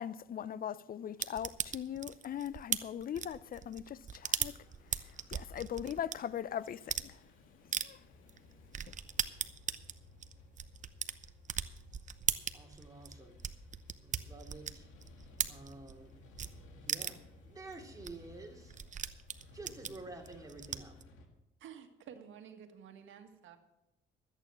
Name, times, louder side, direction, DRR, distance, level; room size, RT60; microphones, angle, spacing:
voice 1, 0.0-4.6 5.3-7.2 7.8-8.0, left 9 dB, 45° left, 0.5 m, -40 dB
sound 1, 1.2-6.2 6.7-7.1 7.7-7.9 8.3-8.4 8.7-16.0 16.4-16.5 16.9-17.3 17.7-17.8 18.0-18.1 18.4-21.0, right 7 dB, 40° right, 0.8 m, -38 dB
sound 2, 4.1-21.3, left 2 dB, 90° left, 2.0 m, -58 dB
voice 2, 12.5-13.4 14.0-14.9 15.5-16.2 16.7-18.8 19.5-21.0, right 2 dB, 15° right, 2.8 m, -50 dB
voice 3, 21.6-23.6, right 8 dB, 75° right, 1.6 m, -52 dB
13.5 x 8.9 x 6.2 m
cardioid pair, 90°, 20 cm